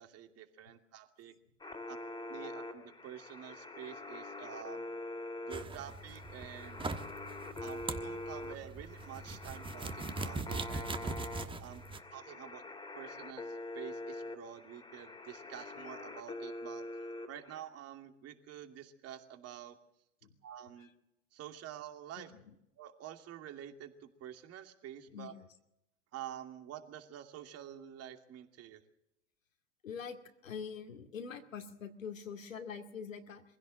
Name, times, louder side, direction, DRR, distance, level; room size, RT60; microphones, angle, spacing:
voice 1, 0.0-1.3 1.9-2.0 2.3-4.9 5.4-6.9 7.6-11.8 12.1-12.6 13.0-16.9 17.3-19.8 20.4-20.9 21.3-22.3 22.8-25.3 26.1-28.8, right 10 dB, 40° right, 7 dB, 2.6 m, -48 dB
sound 1, 1.6-17.6, left 2 dB, 10° left, 3.0 m, -45 dB
sound 2, 5.5-12.0, right 3 dB, 15° right, 1.3 m, -41 dB
voice 2, 29.8-30.2 30.4-33.4, left 6 dB, 90° left, 5 dB, 2.4 m, -44 dB
23.5 x 16.0 x 7.7 m, 0.84 s
hypercardioid pair, 100°, 38 cm